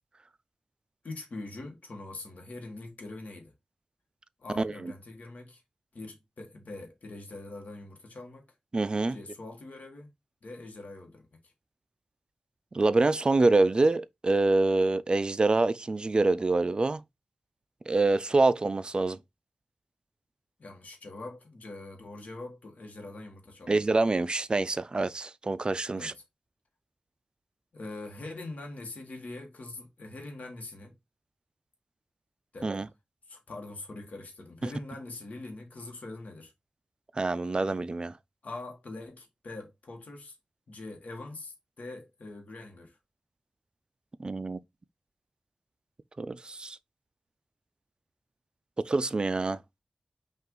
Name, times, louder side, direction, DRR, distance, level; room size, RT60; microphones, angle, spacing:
voice 1, 1.0-3.5 4.4-5.6 5.9-8.4 9.1-10.1 10.4-11.4 20.6-23.8 26.0-26.2 27.7-30.9 32.5-32.9 33.3-36.5 38.4-40.4 40.7-43.0, left 2 dB, 70° left, 1.2 m, -43 dB
voice 2, 4.6-4.9 8.7-9.2 12.7-17.0 17.9-19.2 23.7-26.1 32.6-32.9 37.2-38.1 44.2-44.6 46.2-46.8 48.8-49.6, right 3 dB, 35° right, 0.3 m, -26 dB
5.5 x 2.4 x 3.7 m
wide cardioid pair, 105°, 3 cm